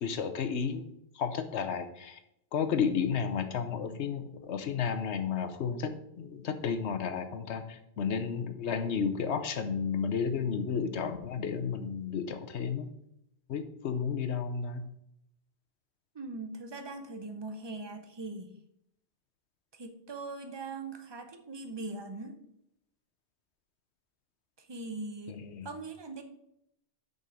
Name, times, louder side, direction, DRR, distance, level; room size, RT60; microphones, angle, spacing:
voice 1, 0.0-0.9 1.1-2.2 2.5-12.9 13.5-14.9 25.3-25.7, left 6 dB, 90° left, 9 dB, 1.1 m, -32 dB
voice 2, 16.1-18.5 19.7-22.4 24.6-26.2, right 3 dB, 25° right, 8 dB, 0.7 m, -41 dB
6.3 x 5.3 x 6.3 m, 0.79 s
omnidirectional pair, 1.1 m